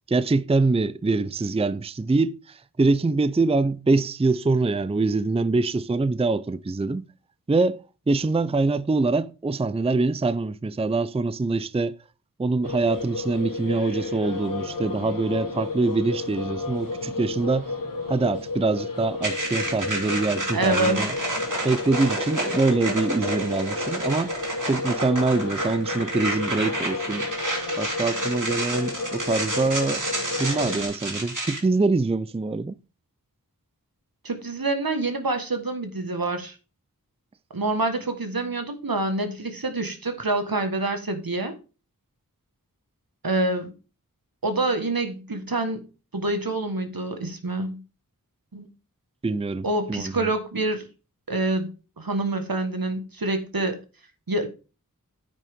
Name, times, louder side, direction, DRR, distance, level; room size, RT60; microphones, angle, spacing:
voice 1, 0.1-7.0 7.5-7.8 8.1-12.0 12.4-17.7 18.1-21.1 21.6-24.4 24.7-27.3 27.8-30.1 30.4-32.7 49.2-50.3, right 3 dB, 15° right, 0.4 m, -24 dB
sound 1, 12.6-30.8, left 3 dB, 70° left, 2.3 m, -32 dB
sound 2, 19.2-31.6, right 2 dB, 60° right, 3.0 m, -30 dB
voice 2, 20.5-21.1 34.2-36.5 37.5-41.5 43.2-43.7 44.4-45.8 46.1-47.8 48.5-48.7 49.6-50.9 51.3-51.7 52.0-53.8 54.3-54.5, right 2 dB, 80° right, 1.6 m, -26 dB
9.2 x 8.3 x 3.6 m
wide cardioid pair, 40°, 35 cm